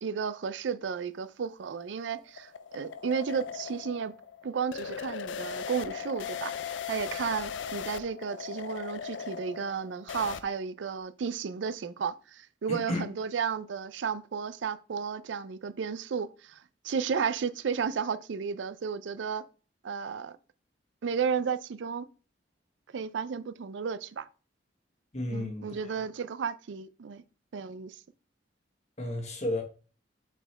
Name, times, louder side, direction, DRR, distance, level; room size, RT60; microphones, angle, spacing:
voice 1, 0.0-4.1 4.4-6.5 6.9-19.4 19.8-20.4 21.0-22.1 22.9-24.3 25.3-27.2 27.5-28.0, right 6 dB, 80° right, 0.4 m, -33 dB
sound 1, 1.4-10.4, left 7 dB, 90° left, 0.5 m, -38 dB
voice 2, 12.7-13.1 25.1-25.8 29.0-29.6, left 1 dB, 40° left, 1.4 m, -32 dB
7.2 x 4.4 x 3.3 m
head